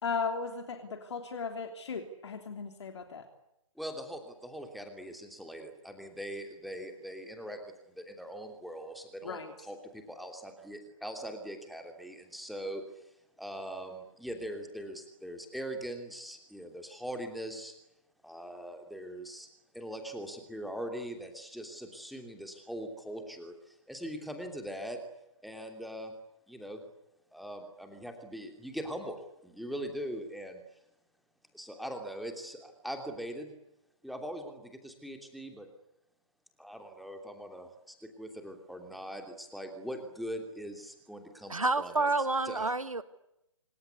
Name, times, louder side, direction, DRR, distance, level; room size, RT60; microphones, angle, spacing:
voice 1, 0.0-3.2 9.2-9.5, left 5 dB, 55° left, 5 dB, 3.3 m, -36 dB
voice 2, 3.8-13.1 13.4-17.7 18.2-19.5 19.7-25.0 25.4-26.1 26.5-26.8 27.3-29.2 29.4-30.6 31.5-33.5 34.0-35.7 36.6-42.1 42.4-42.7, equal, ahead, 4 dB, 3.0 m, -41 dB
voice 3, 41.5-43.0, right 3 dB, 85° right, 13 dB, 1.7 m, -29 dB
26.0 x 23.5 x 8.3 m, 0.86 s
figure-of-eight pair, 135°, 17 cm